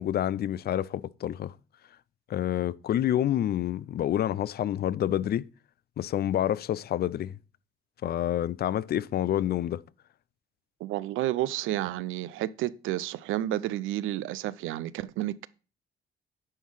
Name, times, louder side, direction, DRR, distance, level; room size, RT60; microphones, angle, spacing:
voice 1, 0.0-1.5 2.3-5.4 6.0-7.3 8.0-9.8, left 11 dB, 55° left, 0.4 m, -28 dB
voice 2, 10.8-15.5, right 14 dB, 85° right, 0.5 m, -31 dB
9.7 x 3.7 x 6.3 m
cardioid pair, 90°, 20 cm